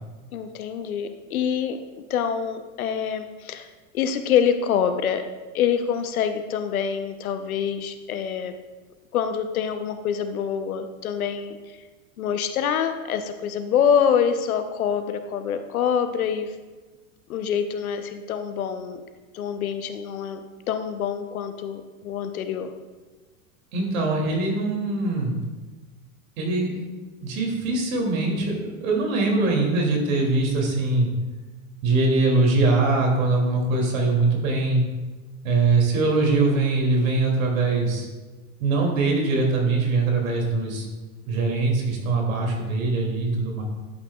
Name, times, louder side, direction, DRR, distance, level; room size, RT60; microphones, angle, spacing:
voice 1, 0.3-3.7 3.9-5.2 5.5-8.6 9.1-11.6 12.2-16.5 17.3-19.0 19.3-20.4 20.7-22.7, left 8 dB, 75° left, 9 dB, 1.0 m, -25 dB
voice 2, 23.7-25.3 26.4-26.8 27.2-31.1 31.8-34.8 35.4-38.1 38.6-40.9 41.3-43.6, right 3 dB, 65° right, 0 dB, 2.9 m, -22 dB
11.5 x 8.7 x 2.4 m, 1.3 s
hypercardioid pair, 95°, 43 cm